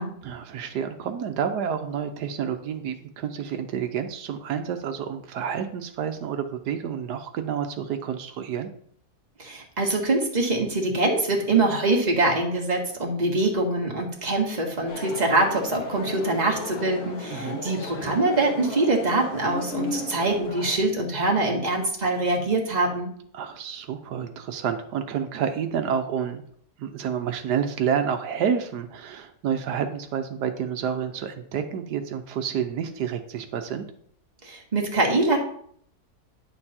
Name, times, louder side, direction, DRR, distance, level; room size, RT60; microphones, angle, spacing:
voice 1, 0.2-8.7 17.3-17.6 23.3-26.4 26.8-33.9, right 8 dB, 90° right, 7 dB, 1.4 m, -29 dB
voice 2, 9.4-23.1 34.4-35.4, right 2 dB, 25° right, 0 dB, 1.9 m, -24 dB
sound 1, 14.9-20.8, left 2 dB, 70° left, 1.8 m, -35 dB
10.0 x 6.7 x 4.3 m, 0.63 s
omnidirectional pair, 1.7 m